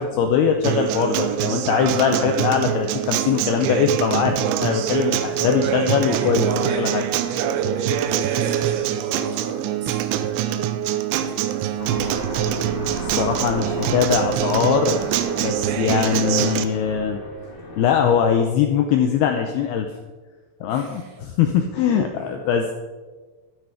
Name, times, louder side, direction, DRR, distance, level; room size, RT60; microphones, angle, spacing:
voice 1, 0.0-6.5 6.8-7.0 13.0-15.1 15.4-17.2 17.8-19.9 20.6-22.7, left 7 dB, 80° left, 5 dB, 2.4 m, -21 dB
Acoustic guitar, 0.6-16.7, right 11 dB, 80° right, 2.9 m, -24 dB
voice 2, 6.0-10.4 11.1-12.3 20.7-21.1 22.2-22.4, right 1 dB, 60° right, 0 dB, 4.0 m, -33 dB
Aircraft, 11.8-18.0, left 1 dB, 30° left, 3.6 m, -34 dB
12.5 x 12.5 x 5.1 m, 1.3 s
omnidirectional pair, 5.6 m